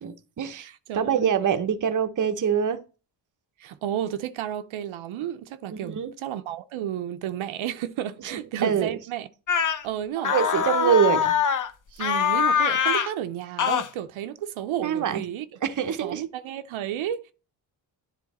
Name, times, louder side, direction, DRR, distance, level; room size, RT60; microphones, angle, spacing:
voice 1, 0.0-0.7 0.9-2.8 5.7-6.1 8.3-8.9 10.2-11.2 14.8-15.2 15.6-16.3, right 8 dB, 40° right, 0.8 m, -25 dB
voice 2, 0.5-1.3 3.6-9.3 9.8-10.3 10.8-11.3 12.0-15.5 16.0-17.3, right 11 dB, 85° right, 0.8 m, -32 dB
sound 1, 9.5-9.8 10.2-11.7 12.0-13.1 13.6-13.9, left 7 dB, 40° left, 0.8 m, -23 dB
10.0 x 3.6 x 4.2 m
cardioid pair, 120°, 47 cm